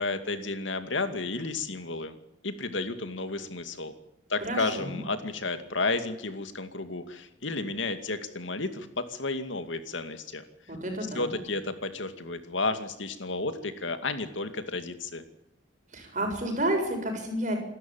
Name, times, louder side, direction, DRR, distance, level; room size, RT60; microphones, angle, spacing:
voice 1, 0.0-2.2 2.4-3.9 4.3-10.4 11.1-15.2, left 3 dB, 85° left, 9 dB, 2.4 m, -32 dB
voice 2, 4.4-5.0 10.7-11.3 15.9-17.6, right 1 dB, 40° right, 3 dB, 7.2 m, -30 dB
27.5 x 13.0 x 9.0 m, 0.85 s
head